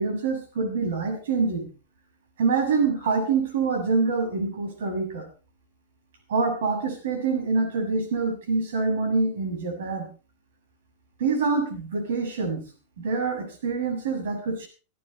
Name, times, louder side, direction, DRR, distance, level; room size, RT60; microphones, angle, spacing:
voice 1, 0.0-1.7 2.4-5.3 6.3-10.1 11.2-12.6 13.0-14.7, right 4 dB, 75° right, 4 dB, 7.2 m, -25 dB
25.0 x 12.0 x 3.3 m, 0.35 s
supercardioid pair, 175°, 0 cm